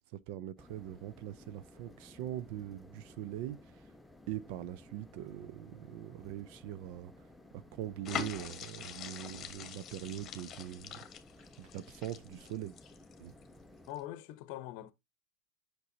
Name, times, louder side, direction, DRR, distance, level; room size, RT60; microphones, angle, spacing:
voice 1, 0.1-3.8 4.3-7.1 7.5-11.0 11.6-12.8 13.2-13.3, right 12 dB, 55° right, 0.5 m, -42 dB
sound 1, 0.6-13.9, left 1 dB, 5° left, 0.7 m, -57 dB
sound 2, 8.1-13.4 13.8-14.0, left 8 dB, 30° left, 1.3 m, -44 dB
voice 2, 13.9-14.9, left 14 dB, 55° left, 0.8 m, -43 dB
8.2 x 6.0 x 2.7 m
hypercardioid pair, 100°, 0 cm